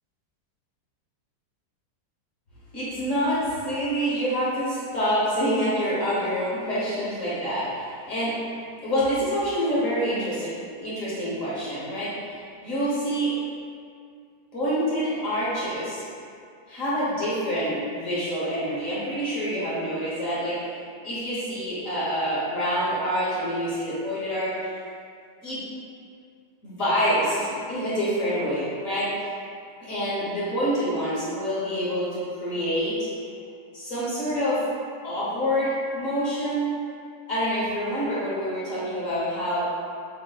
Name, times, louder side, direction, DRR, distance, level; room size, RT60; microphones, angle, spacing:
voice 1, 2.7-8.4 8.8-10.5 10.8-13.4 14.5-16.0 16.7-20.7 21.0-24.7 25.4-25.6 26.6-29.1 29.8-33.1 33.7-34.6 35.0-36.7 37.3-39.6, equal, 50° left, -9 dB, 1.3 m, -27 dB
7.2 x 2.6 x 2.3 m, 2.2 s
omnidirectional pair, 2.0 m